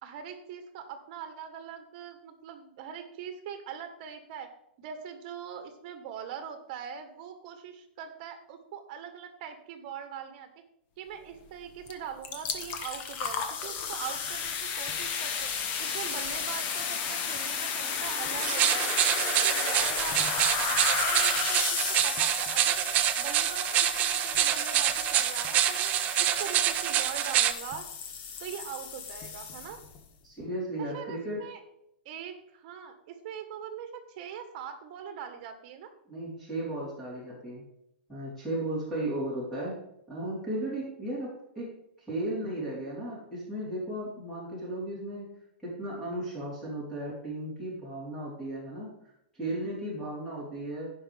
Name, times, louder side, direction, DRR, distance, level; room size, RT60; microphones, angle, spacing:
voice 1, 0.0-4.5 4.8-10.5 11.0-15.5 15.8-18.9 19.2-22.8 23.2-27.9 28.4-29.8 30.9-31.6 32.0-35.9, right 8 dB, 45° right, 7 dB, 1.5 m, -42 dB
sound 1, 11.9-12.0 12.2-30.0, left 6 dB, 35° left, 1.1 m, -33 dB
sound 2, 18.4-27.5, right 12 dB, 30° right, 0.5 m, -26 dB
voice 2, 30.2-31.4 36.1-37.6 38.1-39.7 40.1-41.7 42.0-45.3 45.6-48.9 49.3-50.9, right 1 dB, 5° left, -8 dB, 3.9 m, -35 dB
15.5 x 5.6 x 3.5 m, 0.79 s
hypercardioid pair, 150°, 6 cm